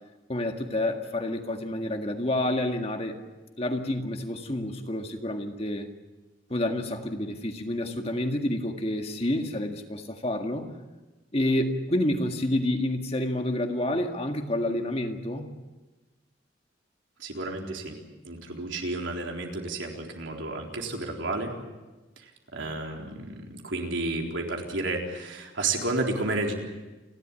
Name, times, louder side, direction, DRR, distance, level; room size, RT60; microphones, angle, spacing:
voice 1, 0.3-3.2 3.6-5.9 6.5-10.7 11.3-15.5, left 1 dB, 30° left, 4 dB, 1.8 m, -29 dB
voice 2, 17.2-18.0 18.2-21.5 22.2-26.5, right 2 dB, 85° right, 1 dB, 4.0 m, -31 dB
29.5 x 12.5 x 9.8 m, 1.2 s
head